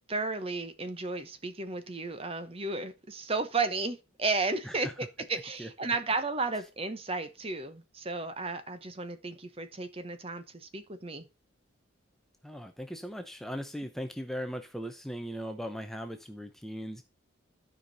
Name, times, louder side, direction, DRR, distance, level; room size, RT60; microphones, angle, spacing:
voice 1, 0.1-4.9 5.3-11.3, right 3 dB, 30° right, 0.9 m, -33 dB
voice 2, 12.4-17.0, equal, ahead, 0.6 m, -38 dB
12.0 x 5.1 x 4.1 m
head